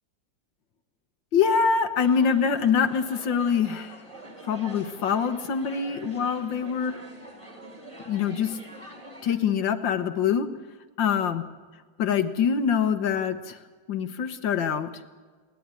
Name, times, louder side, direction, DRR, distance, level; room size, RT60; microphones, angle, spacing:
voice 1, 1.3-4.0 4.4-7.0 8.1-8.6 9.2-10.5 11.0-11.4 12.0-13.6 13.9-14.9, left 6 dB, 80° left, 9 dB, 1.9 m, -24 dB
sound 1, 1.9-9.4, right 1 dB, 15° right, 3.1 m, -44 dB
29.5 x 11.5 x 9.7 m, 1.4 s
omnidirectional pair, 2.0 m